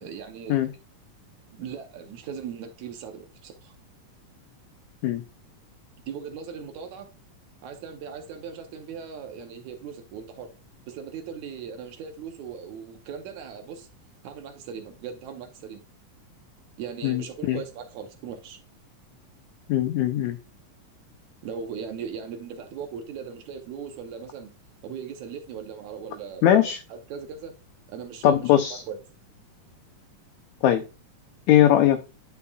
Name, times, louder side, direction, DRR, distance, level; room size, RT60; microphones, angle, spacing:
voice 1, 0.0-0.7 1.5-3.7 6.1-7.1 7.6-10.5 10.9-13.9 14.2-15.8 16.8-18.6 21.4-24.5 24.8-27.5 27.9-29.0, right 7 dB, 75° right, 1.9 m, -38 dB
voice 2, 17.0-17.6 19.7-20.4 26.4-26.8 28.2-28.8 30.6-30.8 31.5-32.0, left 11 dB, 80° left, 1.6 m, -20 dB
9.8 x 5.6 x 2.3 m
omnidirectional pair, 3.8 m